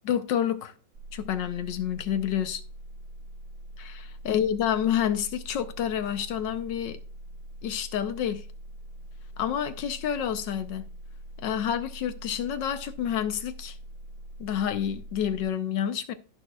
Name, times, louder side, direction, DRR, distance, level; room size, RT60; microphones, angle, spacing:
voice 1, 0.0-0.7 1.1-2.6 3.8-7.0 7.6-8.4 9.4-10.9 11.4-13.8 14.4-16.1, left 9 dB, 70° left, 1.3 m, -29 dB
sound 1, 0.9-15.4, right 1 dB, 50° right, 0.9 m, -43 dB
16.0 x 6.3 x 2.3 m
omnidirectional pair, 2.2 m